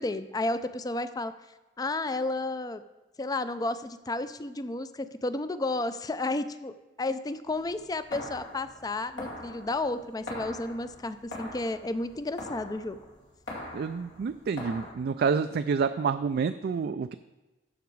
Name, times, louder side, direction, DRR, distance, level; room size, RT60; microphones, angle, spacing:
voice 1, 0.0-1.3 1.8-2.8 3.2-13.0, left 2 dB, 20° left, 12 dB, 0.4 m, -32 dB
sound 1, 7.5-14.9, left 1 dB, 80° left, 2.5 m, -42 dB
voice 2, 13.7-17.1, right 5 dB, 60° right, 9 dB, 0.3 m, -28 dB
14.0 x 4.9 x 4.7 m, 1.1 s
head